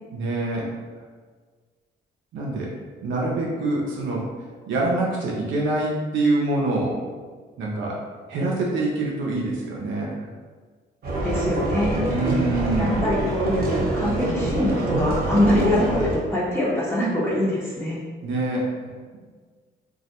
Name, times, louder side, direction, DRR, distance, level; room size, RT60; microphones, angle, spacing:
voice 1, 0.1-0.7 2.3-2.7 3.0-4.3 4.7-7.0 7.6-8.0 8.3-10.3 12.1-13.0 18.2-18.7, right 2 dB, 75° right, -3 dB, 0.5 m, -25 dB
sound 1, 11.0-16.1, right 1 dB, 50° right, 0.9 m, -25 dB
voice 2, 11.2-12.0 12.8-18.0, left 1 dB, 10° left, -9 dB, 0.7 m, -23 dB
2.2 x 2.1 x 2.8 m, 1.5 s
cardioid pair, 90°, 20 cm